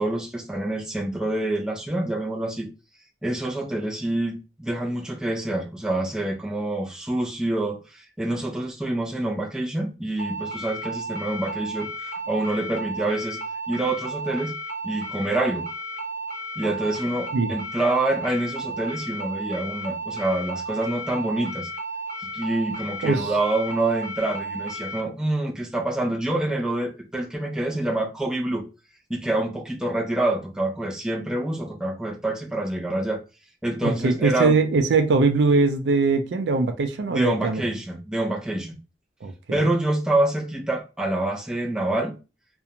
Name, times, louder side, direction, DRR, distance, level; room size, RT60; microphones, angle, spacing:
voice 1, 0.0-2.7 3.2-13.4 13.7-14.5 14.8-15.7 16.6-21.7 22.3-28.6 29.1-33.2 33.6-34.6 37.1-38.8 39.5-42.1, right 1 dB, 5° right, 0.4 m, -26 dB
sound 1, 10.2-25.0, right 2 dB, 45° right, 0.9 m, -33 dB
voice 2, 33.8-37.6 39.2-39.7, right 3 dB, 75° right, 0.4 m, -21 dB
2.5 x 2.1 x 2.8 m
head